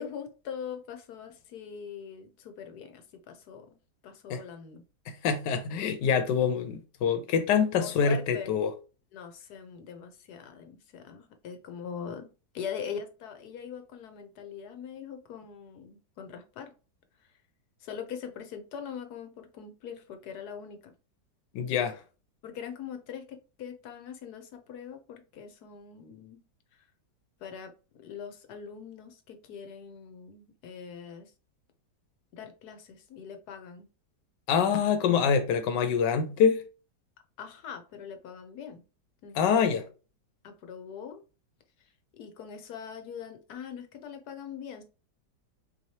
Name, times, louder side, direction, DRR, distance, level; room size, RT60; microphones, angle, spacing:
voice 1, 0.0-3.8 4.0-4.8 7.8-8.5 9.1-16.7 17.8-20.9 22.4-26.4 26.7-26.8 27.4-27.7 28.0-31.3 32.3-33.9 37.4-38.8 39.2-39.8 40.4-41.2 42.2-44.8, left 7 dB, 70° left, 1.2 m, -42 dB
voice 2, 5.1-8.7 21.5-22.0 34.5-36.6 39.3-39.8, left 7 dB, 85° left, 1.3 m, -25 dB
4.3 x 3.1 x 2.8 m
omnidirectional pair, 1.9 m